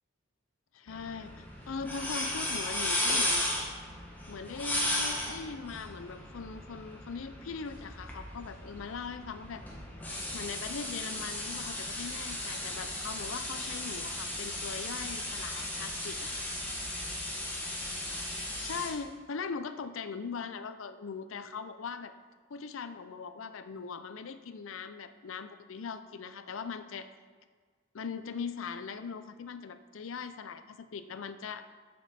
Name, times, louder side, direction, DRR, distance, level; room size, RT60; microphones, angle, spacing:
voice 1, 0.7-3.5 4.3-9.6 10.3-16.4 18.6-22.1 22.5-27.1 27.9-31.6, left 5 dB, 75° left, 11 dB, 0.5 m, -40 dB
sound 1, 0.9-18.9, left 1 dB, 10° left, 1.1 m, -36 dB
8.4 x 7.1 x 4.2 m, 1.6 s
head